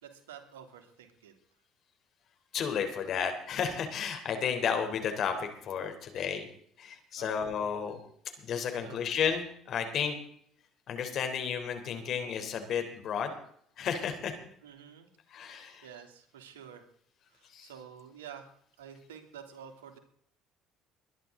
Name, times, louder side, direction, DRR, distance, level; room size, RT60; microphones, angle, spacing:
voice 1, 0.0-1.3 7.2-7.7 8.8-9.0 14.6-15.1 15.5-16.8 17.3-18.5 18.8-20.0, right 8 dB, 90° right, 4 dB, 2.9 m, -50 dB
voice 2, 2.5-6.5 6.8-8.0 8.4-10.2 10.9-13.3 13.8-14.3 15.3-15.9 17.4-17.7, left 7 dB, 55° left, 6 dB, 3.6 m, -32 dB
22.0 x 11.0 x 3.9 m, 0.64 s
hypercardioid pair, 70°, 0 cm